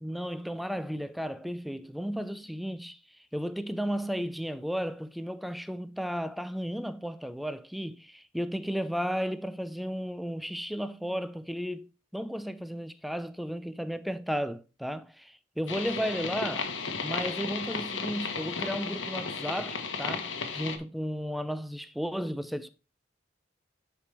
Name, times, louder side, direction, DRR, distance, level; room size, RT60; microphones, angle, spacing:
voice 1, 0.0-3.0 3.3-16.8 17.0-22.7, equal, ahead, 0.4 m, -34 dB
sound 1, 15.7-20.8, left 5 dB, 80° left, 1.2 m, -34 dB
9.7 x 5.1 x 3.2 m
head